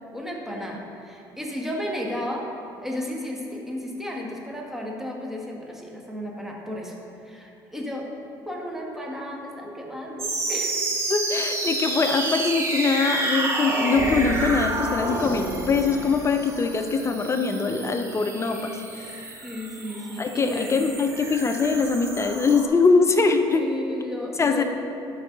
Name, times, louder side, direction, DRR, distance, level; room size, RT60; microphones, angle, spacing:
voice 1, 0.1-2.5 2.8-7.0 7.2-8.1 8.4-10.8 19.4-20.8 23.5-24.6, left 1 dB, 5° right, -1 dB, 1.7 m, -33 dB
sound 1, 10.2-22.7, right 2 dB, 25° right, 1.8 m, -29 dB
voice 2, 11.1-19.1 20.2-23.6 24.4-24.6, left 4 dB, 30° left, 6 dB, 0.6 m, -23 dB
12.0 x 5.5 x 3.9 m, 2.8 s
supercardioid pair, 80°, 10 cm